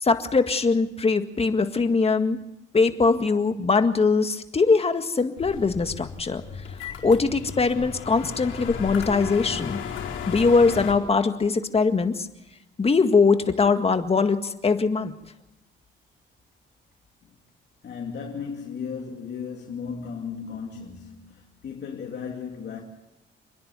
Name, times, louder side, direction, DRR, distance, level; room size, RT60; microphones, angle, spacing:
voice 1, 0.0-2.4 2.7-6.4 7.0-9.8 10.3-12.3 12.8-15.1, left 4 dB, 30° left, 1.9 m, -21 dB
sound 1, 5.4-10.9, left 7 dB, 75° left, 4.5 m, -35 dB
voice 2, 17.8-22.8, left 6 dB, 60° left, 2.7 m, -35 dB
28.5 x 10.5 x 9.4 m
cardioid pair, 90°, 20 cm